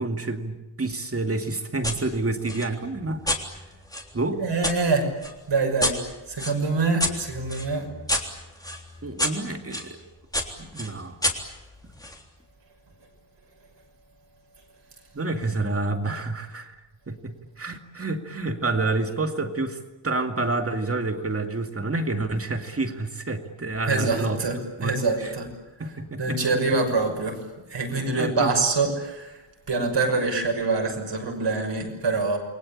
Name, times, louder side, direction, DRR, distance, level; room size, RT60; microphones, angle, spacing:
voice 1, 0.0-3.3 4.1-4.4 7.7-7.8 9.0-10.0 10.6-11.2 15.1-16.7 17.1-19.8 20.0-24.4 24.8-25.4 25.8-26.4 26.7-26.8 28.0-28.6, right 2 dB, 30° right, 6 dB, 2.4 m, -28 dB
sound 1, 1.8-2.0 2.5-4.8 5.2-9.9 10.3-12.2, left 1 dB, 10° left, 3.5 m, -30 dB
voice 2, 4.4-5.1 5.5-6.0 6.3-7.9 23.9-25.5 26.2-27.4 27.7-29.3 29.7-32.4, right 3 dB, 60° right, 3 dB, 6.5 m, -25 dB
29.5 x 22.5 x 8.7 m, 1.0 s
wide cardioid pair, 145°, 48 cm